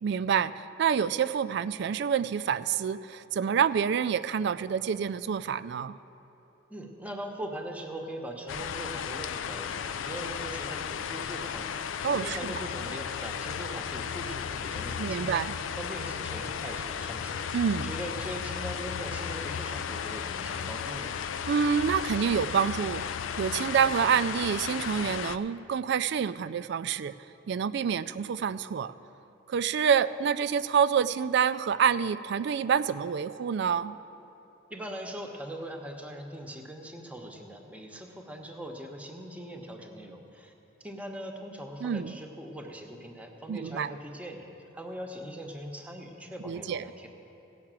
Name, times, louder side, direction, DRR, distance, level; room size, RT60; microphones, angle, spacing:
voice 1, 0.0-5.9 12.0-12.5 15.0-15.5 17.5-17.9 21.5-23.0 23.4-27.1 27.5-28.9 29.5-34.0 41.8-42.2 43.5-43.9 46.5-46.8, right 7 dB, 60° right, 16 dB, 0.3 m, -27 dB
voice 2, 6.7-15.5 15.8-21.1 34.7-40.5 40.8-44.4 44.7-47.1, right 1 dB, 5° right, 3 dB, 0.9 m, -41 dB
sound 1, 8.5-25.4, left 7 dB, 85° left, 0.4 m, -35 dB
16.5 x 5.9 x 7.4 m, 3.0 s
head